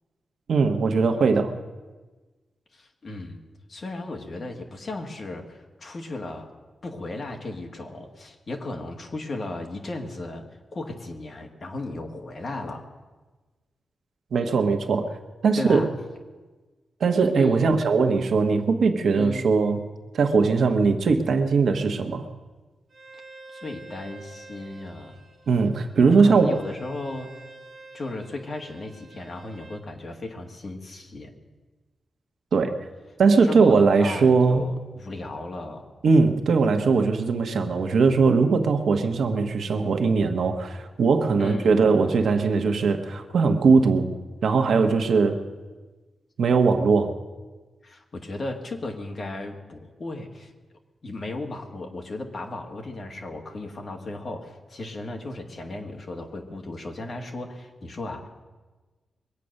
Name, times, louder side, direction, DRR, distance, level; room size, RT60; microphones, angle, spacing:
voice 1, 0.5-1.5 14.3-15.1 15.4-15.9 17.0-19.8 20.1-22.3 25.5-26.6 32.5-32.7 33.2-34.7 36.0-44.1 44.4-45.4 46.4-47.1, right 4 dB, 65° right, 6 dB, 1.1 m, -20 dB
voice 2, 2.7-3.4 3.7-6.5 6.8-10.4 10.7-12.9 15.5-15.9 17.4-17.7 19.1-19.5 23.5-25.2 26.2-27.3 27.9-31.3 33.4-35.9 41.4-41.7 47.8-50.5 51.0-58.3, left 2 dB, 35° left, 3 dB, 1.6 m, -35 dB
Bowed string instrument, 22.9-29.8, right 2 dB, 35° right, 3.0 m, -48 dB
22.5 x 8.5 x 6.5 m, 1.3 s
wide cardioid pair, 180°, 0 cm